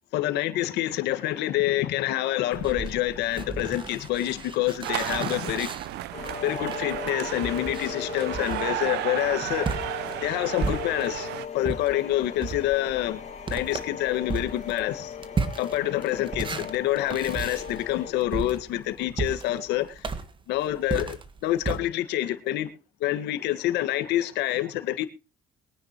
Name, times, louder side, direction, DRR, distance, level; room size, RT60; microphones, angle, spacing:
voice 1, 0.1-5.7 6.4-9.8 10.2-11.3 11.5-13.2 13.5-15.1 15.6-19.9 20.5-21.2 21.4-22.7 23.0-25.1, left 14 dB, 85° left, 1.8 m, -27 dB
sound 1, 2.5-11.3 11.6-21.8, right 4 dB, 30° right, 1.6 m, -35 dB
sound 2, 4.8-11.5, right 15 dB, 85° right, 0.9 m, -33 dB
sound 3, 6.1-18.1, left 8 dB, 45° left, 2.1 m, -38 dB
22.5 x 9.8 x 3.1 m
cardioid pair, 110°, 17 cm